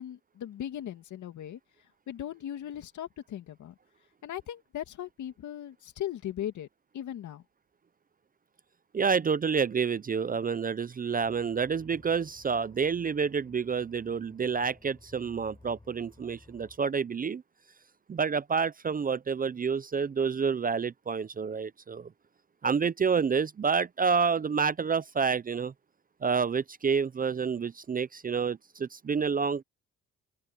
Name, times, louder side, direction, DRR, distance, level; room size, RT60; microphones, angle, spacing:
voice 1, 0.0-1.6 2.1-3.7 4.2-6.7 6.9-7.4, left 11 dB, 75° left, 2.4 m, -38 dB
voice 2, 8.9-17.4 18.1-22.1 22.6-25.7 26.2-29.6, right 5 dB, 30° right, 0.6 m, -28 dB
sound 1, 11.2-16.8, left 2 dB, 15° left, 6.3 m, -57 dB
open air
cardioid pair, 90°, 30 cm